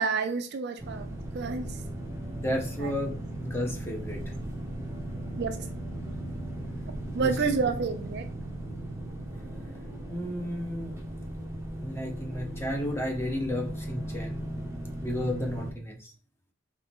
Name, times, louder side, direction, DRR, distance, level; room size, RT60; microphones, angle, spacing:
voice 1, 0.0-1.8 2.8-3.2 5.4-5.6 7.1-8.3, right 5 dB, 50° right, 0.4 m, -30 dB
sound 1, 0.8-15.7, right 1 dB, 10° right, 0.7 m, -37 dB
voice 2, 2.3-4.2 7.2-7.5 10.1-11.0 11.8-14.4 15.0-16.1, left 1 dB, 10° left, 0.9 m, -33 dB
4.5 x 3.2 x 3.5 m
head